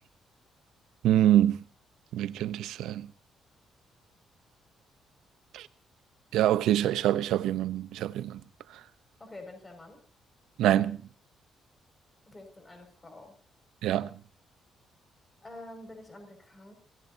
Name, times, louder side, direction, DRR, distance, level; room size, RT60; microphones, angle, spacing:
voice 1, 1.0-1.6 2.1-3.1 5.5-5.6 6.3-8.4 10.6-11.0 13.8-14.1, right 12 dB, 85° right, 0.8 m, -25 dB
voice 2, 9.2-10.0 12.3-13.4 15.4-16.7, left 2 dB, 25° left, 6.0 m, -47 dB
27.5 x 17.5 x 2.8 m
cardioid pair, 90°, 0 cm